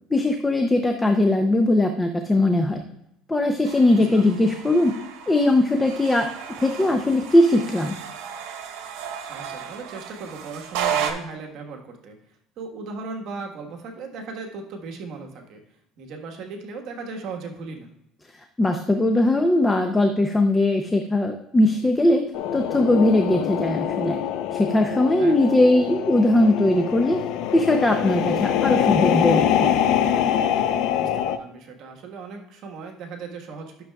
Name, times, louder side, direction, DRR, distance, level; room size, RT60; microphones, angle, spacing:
voice 1, 0.1-2.8 3.3-4.9 5.3-6.3 6.6-8.0 18.6-22.2 22.5-24.2 24.5-27.2 27.5-29.7, left 1 dB, 10° left, 5 dB, 0.6 m, -20 dB
sound 1, 3.6-11.1, right 8 dB, 80° right, 1.2 m, -33 dB
voice 2, 4.0-4.3 9.3-12.2 12.6-15.6 16.0-17.9 25.2-25.6 31.0-33.8, right 4 dB, 55° right, 2 dB, 1.4 m, -37 dB
sound 2, 22.3-31.4, left 9 dB, 70° left, 0.6 m, -24 dB
11.5 x 6.5 x 2.3 m, 0.81 s
cardioid pair, 135°, 0 cm